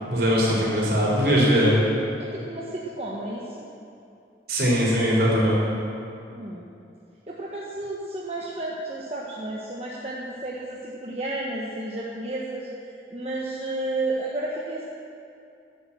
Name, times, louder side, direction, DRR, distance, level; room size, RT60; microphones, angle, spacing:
voice 1, 0.1-1.8 4.5-5.6, equal, 60° right, -4 dB, 4.4 m, -20 dB
voice 2, 0.6-0.9 2.2-3.7 6.3-6.7 7.3-14.8, right 2 dB, 35° right, -4 dB, 1.3 m, -32 dB
13.0 x 10.5 x 7.6 m, 2.6 s
head